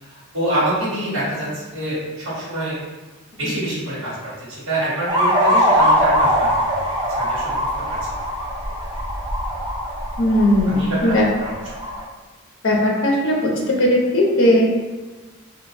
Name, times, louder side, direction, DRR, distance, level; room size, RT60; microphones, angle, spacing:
voice 1, 0.0-2.8 3.4-6.7 7.1-7.7 8.1-8.2 8.6-8.7 10.7-11.5, right 1 dB, 70° right, -7 dB, 1.2 m, -26 dB
sound 1, 5.1-12.0, equal, 20° right, 0.4 m, -21 dB
voice 2, 10.2-11.2 12.6-13.5 13.8-14.8, left 1 dB, 60° left, -2 dB, 0.6 m, -17 dB
2.8 x 2.4 x 2.6 m, 1.3 s
head